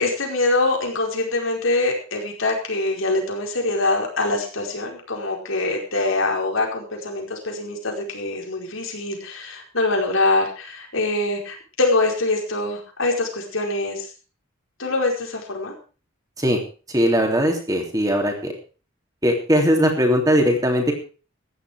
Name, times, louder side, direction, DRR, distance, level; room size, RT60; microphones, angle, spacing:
voice 1, 0.0-14.1 14.8-15.7, left 2 dB, 75° left, 1 dB, 4.8 m, -24 dB
voice 2, 16.9-18.5 19.2-20.9, equal, 15° right, 3 dB, 3.2 m, -19 dB
15.0 x 11.0 x 4.9 m, 0.37 s
head